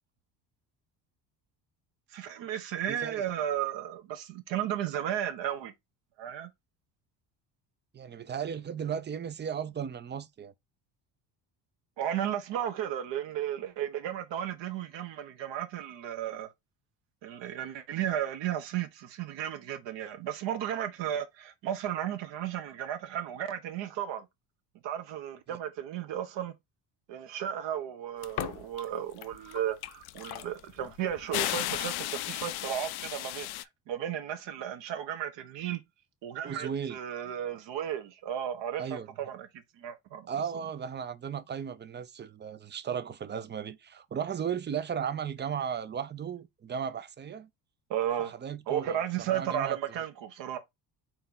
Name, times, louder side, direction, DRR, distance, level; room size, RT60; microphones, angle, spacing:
voice 1, 2.1-5.7 6.2-6.5 12.0-16.5 17.2-24.3 24.8-26.5 27.1-35.8 36.2-40.3 47.9-48.3 48.7-50.6, right 10 dB, 60° right, 1.1 m, -34 dB
voice 2, 2.9-3.2 7.9-10.5 25.5-25.6 36.4-37.0 38.8-39.1 40.3-47.5 48.2-50.0, right 7 dB, 25° right, 0.5 m, -36 dB
sound 1, 28.2-28.8 29.2-33.6, left 16 dB, 55° left, 0.5 m, -35 dB
4.3 x 3.0 x 3.8 m
supercardioid pair, 75°, 48 cm